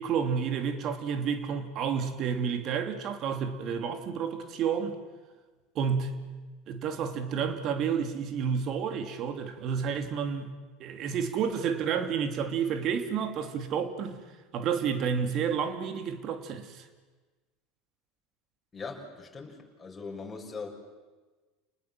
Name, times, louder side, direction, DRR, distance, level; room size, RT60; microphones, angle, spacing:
voice 1, 0.0-5.0 5.7-6.2 6.7-14.2 14.5-16.9, right 7 dB, 50° right, 2.8 m, -30 dB
voice 2, 18.7-20.7, left 4 dB, 20° left, 5.9 m, -40 dB
30.0 x 20.0 x 7.6 m
hypercardioid pair, 85°, 0 cm